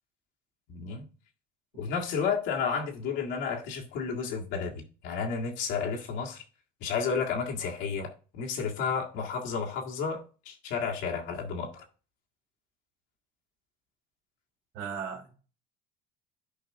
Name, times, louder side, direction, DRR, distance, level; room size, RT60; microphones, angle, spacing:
voice 1, 0.7-1.0 1.8-6.4 6.8-11.8, left 5 dB, 75° left, 1.8 m, -32 dB
voice 2, 14.7-15.4, right 6 dB, 70° right, 2.5 m, -37 dB
11.5 x 4.9 x 3.7 m
cardioid pair, 125°, 20 cm